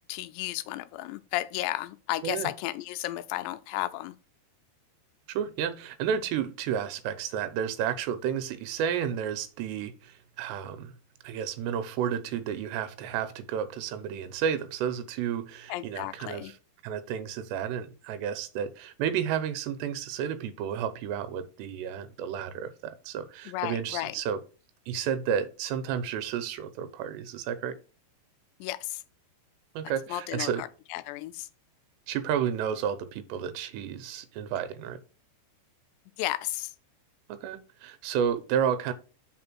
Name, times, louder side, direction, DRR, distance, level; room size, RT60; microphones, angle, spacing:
voice 1, 0.1-4.1 15.7-16.5 23.5-24.2 28.6-29.0 30.1-31.5 36.2-36.7, left 16 dB, 90° left, 2.8 m, -33 dB
voice 2, 5.3-10.9 11.2-16.6 16.8-24.4 24.9-27.8 29.8-30.6 32.1-35.0 37.3-38.9, right 8 dB, 80° right, 2.9 m, -31 dB
5.7 x 4.3 x 6.0 m
omnidirectional pair, 4.9 m